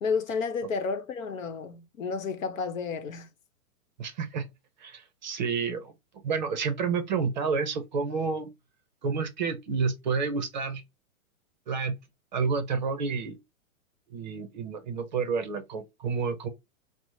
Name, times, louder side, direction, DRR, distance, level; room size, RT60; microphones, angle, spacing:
voice 1, 0.0-3.3, left 5 dB, 65° left, 0.9 m, -31 dB
voice 2, 4.0-4.4 4.8-5.9 6.2-8.5 9.0-10.8 11.7-12.0 12.3-13.4 14.1-16.5, right 5 dB, 35° right, 0.6 m, -29 dB
5.2 x 2.0 x 3.1 m
hypercardioid pair, 165°, 42 cm